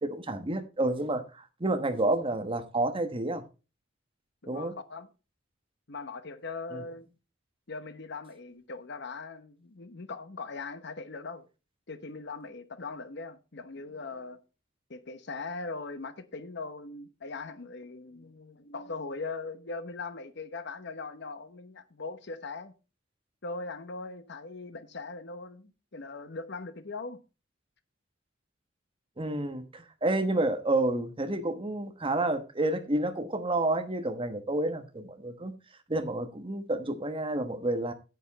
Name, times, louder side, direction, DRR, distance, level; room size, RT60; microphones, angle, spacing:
voice 1, 0.0-3.4 4.5-4.7 6.7-6.8 29.2-35.5 35.9-37.9, right 2 dB, 25° right, 1.2 m, -29 dB
voice 2, 4.4-5.1 5.9-7.1 7.7-11.4 11.9-14.4 14.9-22.7 23.4-27.2, left 3 dB, 60° left, 1.0 m, -40 dB
9.5 x 8.2 x 4.1 m
head